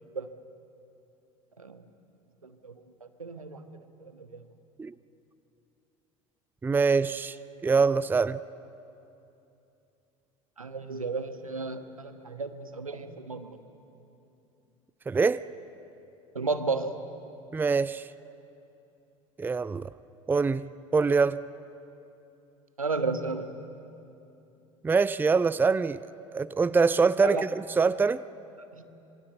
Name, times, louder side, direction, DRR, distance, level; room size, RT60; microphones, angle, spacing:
voice 1, 3.2-3.7 4.0-4.4 10.6-13.6 16.3-17.0 22.8-23.5 27.2-27.4 28.7-28.9, right 4 dB, 85° right, 9 dB, 1.3 m, -33 dB
voice 2, 6.6-8.4 15.1-15.5 17.5-18.1 19.4-19.9 20.3-21.4 24.8-26.0 26.3-28.3, right 4 dB, 10° right, 16 dB, 0.5 m, -24 dB
26.5 x 23.5 x 8.0 m, 2.8 s
figure-of-eight pair, 70°, 17 cm